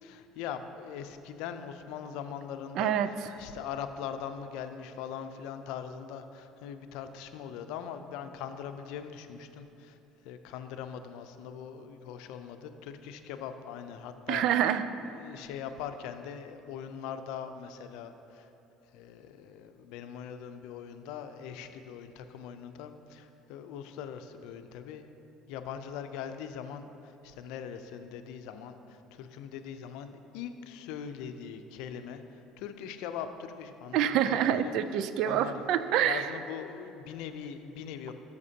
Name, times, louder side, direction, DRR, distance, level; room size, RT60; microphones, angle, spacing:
voice 1, 0.0-2.9 3.4-10.0 10.2-14.4 15.1-18.5 18.9-25.1 25.5-26.9 27.2-32.2 32.6-34.7 35.2-35.6 36.0-38.1, left 8 dB, 75° left, 8 dB, 0.5 m, -41 dB
voice 2, 2.8-3.1 14.3-14.8 33.9-36.3, right 10 dB, 65° right, 12 dB, 0.4 m, -26 dB
12.0 x 6.5 x 2.8 m, 3.0 s
supercardioid pair, 80°, 0 cm